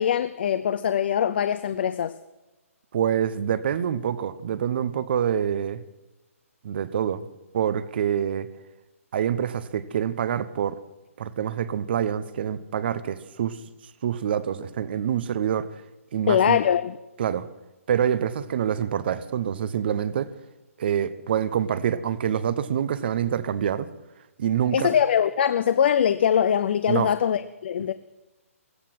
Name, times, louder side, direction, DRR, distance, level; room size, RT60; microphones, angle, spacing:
voice 1, 0.0-2.2 16.3-17.0 24.7-27.9, left 9 dB, 45° left, 0.6 m, -22 dB
voice 2, 2.9-5.8 6.6-7.3 7.5-8.5 9.1-10.8 11.2-13.6 14.0-15.7 16.1-16.6 17.2-17.5 17.9-20.3 20.8-23.9 24.4-25.0 26.9-27.1, right 9 dB, 45° right, 0.9 m, -26 dB
16.5 x 13.5 x 6.0 m
hypercardioid pair, 165°, 8 cm